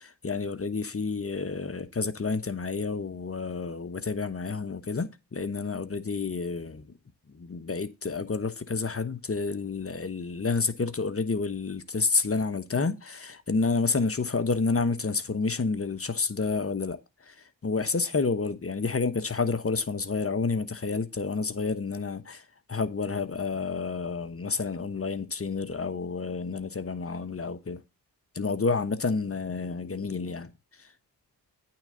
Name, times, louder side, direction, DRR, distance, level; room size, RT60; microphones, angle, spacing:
voice 1, 0.0-6.9 7.3-17.0 17.2-22.4 22.7-27.8 28.3-30.5 30.8-30.9, left 4 dB, 30° left, 1.1 m, -29 dB
8.9 x 3.8 x 6.8 m
supercardioid pair, 40°, 43 cm